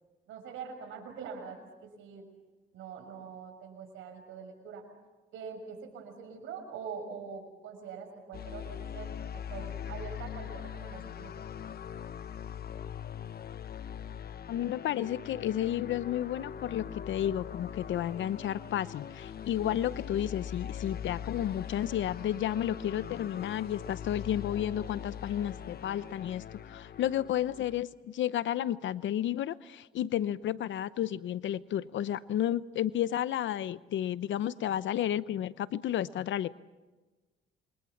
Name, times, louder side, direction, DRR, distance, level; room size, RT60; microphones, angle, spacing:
voice 1, 0.3-2.3 2.7-4.8 5.3-11.7, right 6 dB, 90° right, 4 dB, 6.5 m, -44 dB
sound 1, 8.3-27.8, left 8 dB, 50° left, 1.1 m, -42 dB
voice 2, 14.5-26.4 26.7-36.5, left 11 dB, 70° left, 16 dB, 0.8 m, -32 dB
28.0 x 23.5 x 7.2 m, 1.2 s
cardioid pair, 90°, 20 cm